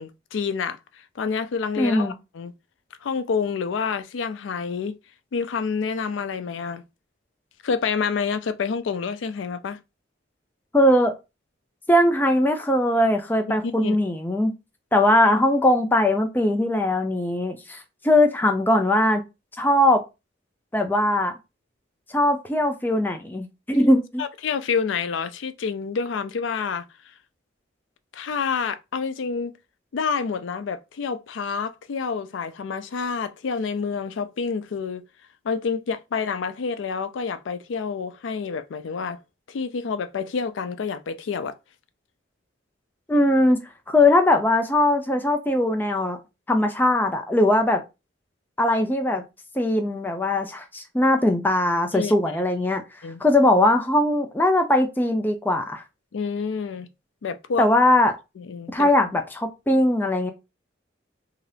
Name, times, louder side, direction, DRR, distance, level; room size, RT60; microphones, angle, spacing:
voice 1, 0.0-2.5 3.0-5.0 5.3-6.8 7.6-9.8 13.6-14.0 24.2-26.9 28.1-29.5 29.9-35.0 35.4-39.2 39.5-41.5 51.9-52.1 53.0-53.2 56.1-56.9 57.2-57.7 58.4-58.9, left 5 dB, 75° left, 0.4 m, -28 dB
voice 2, 1.8-2.1 10.7-11.1 11.9-14.5 14.9-19.2 19.6-20.0 20.7-21.3 22.1-24.2 43.1-43.6 43.9-46.2 46.5-47.8 48.6-49.2 49.6-52.8 53.2-55.8 57.6-58.1 58.7-60.3, left 1 dB, 10° left, 0.4 m, -20 dB
2.7 x 2.4 x 3.3 m
head